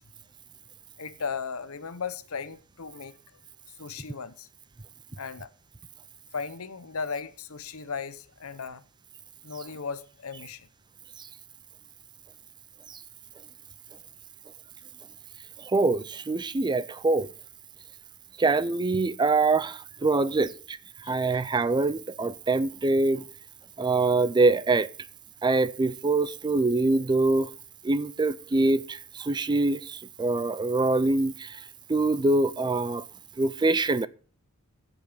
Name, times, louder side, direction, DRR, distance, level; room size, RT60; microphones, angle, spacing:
voice 1, 1.0-3.2 3.8-4.5 5.2-5.5 6.3-8.8 9.4-10.7 21.0-21.4, left 5 dB, 75° left, 0.8 m, -36 dB
voice 2, 15.6-17.3 18.4-20.8 21.1-23.2 23.8-24.9 25.4-27.5 27.8-31.6 31.9-33.0 33.4-34.1, right 3 dB, 20° right, 0.4 m, -24 dB
15.5 x 5.4 x 6.6 m
head